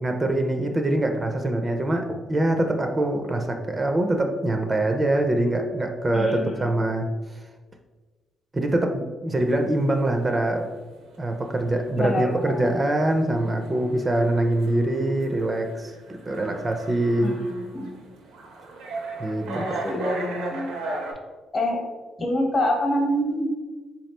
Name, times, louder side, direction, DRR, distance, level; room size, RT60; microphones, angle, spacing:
voice 1, 0.0-7.1 8.5-10.7 11.2-15.9 16.3-17.4 19.2-19.8, right 1 dB, 25° right, 4 dB, 0.4 m, -24 dB
voice 2, 6.1-6.7 12.0-12.8 17.2-18.0 19.5-20.8 21.5-21.8 22.2-23.5, left 1 dB, 45° left, 2 dB, 0.9 m, -26 dB
sound 1, 9.3-21.1, right 3 dB, 85° right, 0.7 m, -38 dB
3.7 x 2.9 x 3.2 m, 1.3 s
cardioid pair, 90°, 0 cm